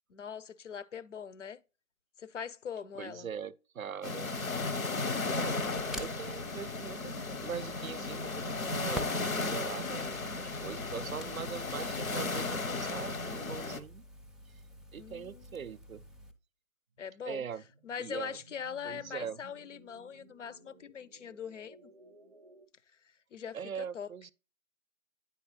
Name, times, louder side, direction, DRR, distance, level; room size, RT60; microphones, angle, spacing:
voice 1, 0.1-1.6 2.2-3.3 14.9-15.7 17.0-17.4 17.8-21.9 23.3-24.1, left 7 dB, 60° left, 0.6 m, -42 dB
voice 2, 2.9-4.3 5.0-5.7 6.0-14.0 14.5-14.6 14.9-16.1 17.2-17.6 18.0-18.4 18.8-19.4 23.5-24.3, right 7 dB, 80° right, 0.5 m, -42 dB
sound 1, 4.0-13.8, left 3 dB, 80° left, 1.0 m, -35 dB
Crackle, 5.3-16.3, right 1 dB, ahead, 0.3 m, -49 dB
sound 2, 17.1-22.7, right 3 dB, 35° right, 0.7 m, -59 dB
9.1 x 4.6 x 3.1 m
figure-of-eight pair, 150°, 41 cm